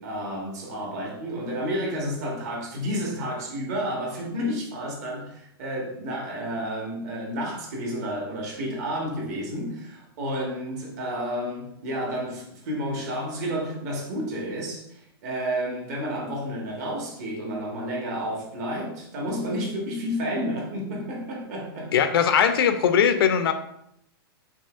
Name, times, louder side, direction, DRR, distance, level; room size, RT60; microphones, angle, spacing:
voice 1, 0.0-21.9, equal, 40° right, -1 dB, 1.1 m, -31 dB
voice 2, 21.9-23.5, left 8 dB, 65° left, 8 dB, 0.5 m, -20 dB
5.5 x 2.9 x 2.4 m, 0.74 s
supercardioid pair, 170°, 13 cm